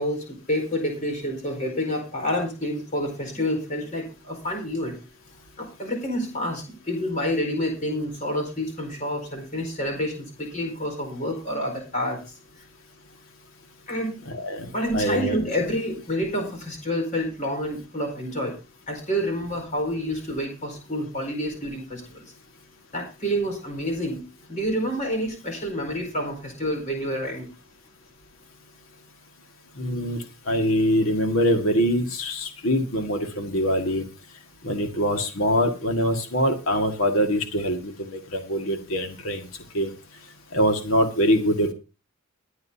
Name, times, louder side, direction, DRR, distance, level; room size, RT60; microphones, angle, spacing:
voice 1, 0.0-5.0 5.6-12.3 13.9-14.2 14.7-18.5 18.9-22.3 22.9-27.5, equal, 40° left, 3 dB, 4.6 m, -28 dB
voice 2, 14.3-15.4 29.8-34.0 34.6-39.5 39.7-39.9 40.5-41.7, equal, 70° left, 5 dB, 2.0 m, -24 dB
21.0 x 9.5 x 2.8 m, 0.30 s
head